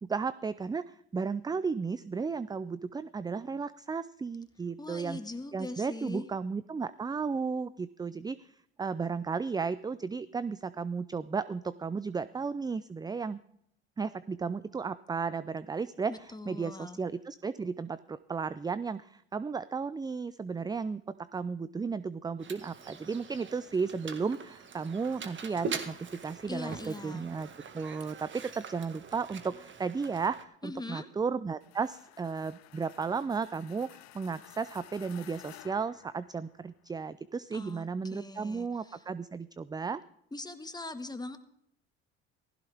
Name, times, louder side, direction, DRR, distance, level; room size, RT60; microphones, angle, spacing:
voice 1, 0.0-5.2 5.5-8.4 8.8-13.4 14.0-27.5 27.7-40.0, right 5 dB, 15° right, 16 dB, 0.4 m, -34 dB
voice 2, 4.8-6.3 16.1-17.0 26.5-27.3 30.6-31.1 37.5-39.0 40.3-41.4, left 2 dB, 15° left, 9 dB, 1.7 m, -41 dB
Mechanisms, 22.4-30.4, right 5 dB, 40° right, 1.8 m, -43 dB
sound 1, 31.6-36.8, left 15 dB, 65° left, 0.8 m, -54 dB
16.0 x 15.5 x 3.5 m, 0.72 s
supercardioid pair, 75°, 30 cm